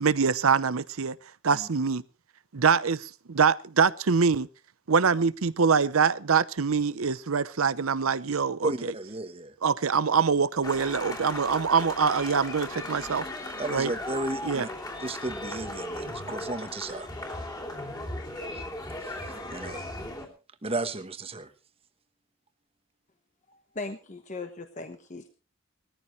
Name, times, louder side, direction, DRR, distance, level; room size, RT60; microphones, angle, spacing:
voice 1, 0.0-1.2 1.4-2.0 2.5-4.5 4.9-8.9 9.6-13.3 13.7-13.9 14.4-14.7, right 5 dB, 80° right, 0.7 m, -24 dB
voice 2, 8.6-9.5 13.6-14.7 15.0-17.1 18.5-18.7 19.0-19.9 20.6-21.5, right 2 dB, 25° right, 1.2 m, -34 dB
sound 1, 10.6-20.3, left 1 dB, 20° left, 2.8 m, -37 dB
voice 3, 23.5-25.3, left 3 dB, 35° left, 1.1 m, -39 dB
20.0 x 14.0 x 3.2 m
head